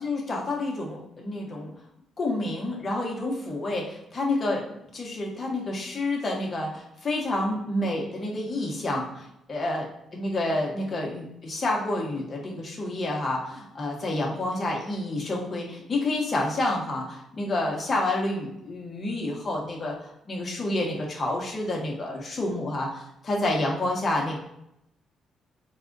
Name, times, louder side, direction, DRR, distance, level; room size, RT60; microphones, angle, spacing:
voice 1, 0.0-1.7 2.2-9.8 10.1-24.4, left 2 dB, 40° left, -2 dB, 1.2 m, -29 dB
4.1 x 2.5 x 3.8 m, 0.79 s
cardioid pair, 90°, 0 cm